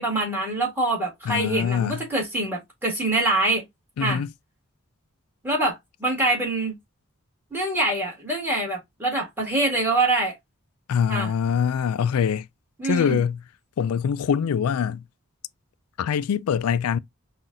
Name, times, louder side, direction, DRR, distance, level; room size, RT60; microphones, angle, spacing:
voice 1, 0.0-3.6 4.0-4.2 5.4-6.8 7.5-10.3 11.1-11.3 12.8-13.2, right 2 dB, 10° right, 1.8 m, -25 dB
voice 2, 1.3-2.0 4.0-4.3 10.9-12.5 12.8-13.4 13.8-15.0 16.0-17.0, left 7 dB, 90° left, 0.3 m, -24 dB
5.6 x 2.4 x 2.5 m
head